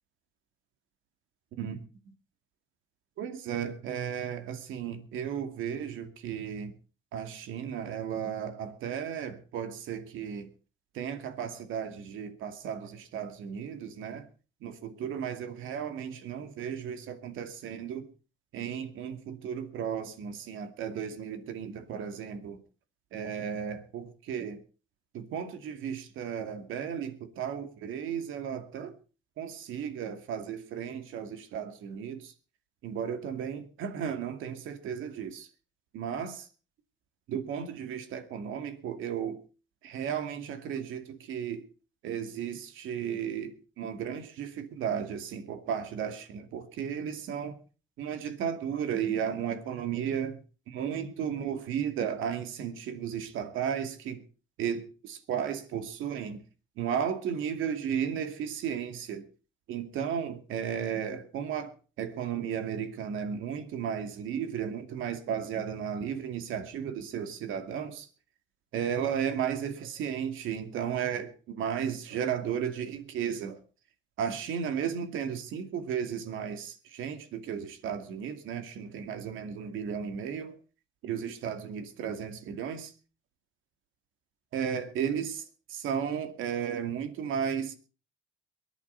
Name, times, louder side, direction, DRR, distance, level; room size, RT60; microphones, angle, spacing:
voice 1, 3.2-6.7 7.1-10.5 10.9-14.2 14.6-18.1 18.5-22.6 23.1-24.6 25.1-28.9 29.4-32.3 32.8-35.5 35.9-36.5 37.3-39.4 39.8-41.7 42.0-47.6 48.0-50.4 50.7-54.2 54.6-56.4 56.8-59.3 59.7-68.1 68.7-73.6 74.2-80.6 81.0-82.9 84.5-87.8, right 8 dB, 90° right, 2.5 m, -34 dB
23.5 x 11.0 x 4.0 m
cardioid pair, 90°, 20 cm